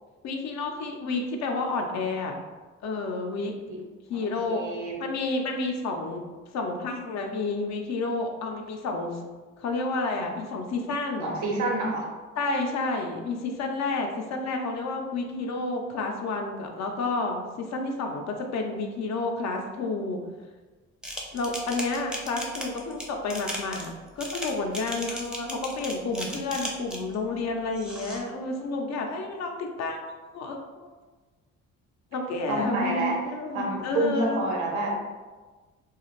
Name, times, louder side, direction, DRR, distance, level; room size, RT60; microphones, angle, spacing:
voice 1, 0.2-2.3 2.8-3.5 4.1-4.6 5.0-6.2 6.5-9.2 9.6-11.3 12.3-20.2 21.3-30.0 30.3-30.9 32.1-34.4, left 3 dB, 65° left, 3 dB, 0.5 m, -30 dB
voice 2, 4.1-4.9 11.2-12.1 32.5-33.2 33.5-35.0, right 2 dB, 75° right, 0 dB, 0.7 m, -28 dB
sound 1, 21.0-27.1 27.7-28.2, equal, 5° right, 0.5 m, -36 dB
2.4 x 2.3 x 3.0 m, 1.3 s
cardioid pair, 90°, 30 cm